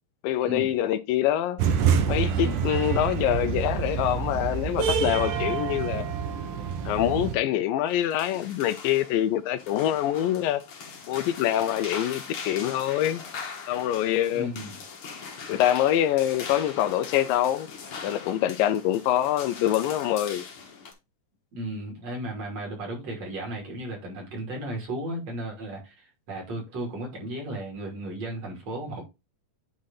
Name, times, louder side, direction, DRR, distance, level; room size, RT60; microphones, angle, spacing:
voice 1, 0.2-1.6 2.1-6.1 6.9-10.6 11.1-13.2 13.7-14.5 15.5-17.7 18.0-20.5, left 12 dB, 80° left, 2.2 m, -25 dB
sound 1, 1.6-7.4, right 7 dB, 70° right, 2.5 m, -27 dB
sound 2, 7.9-20.9, left 5 dB, 55° left, 1.6 m, -40 dB
voice 2, 14.3-14.8 21.5-29.0, right 1 dB, 45° right, 3.8 m, -35 dB
9.6 x 3.8 x 4.0 m
omnidirectional pair, 4.2 m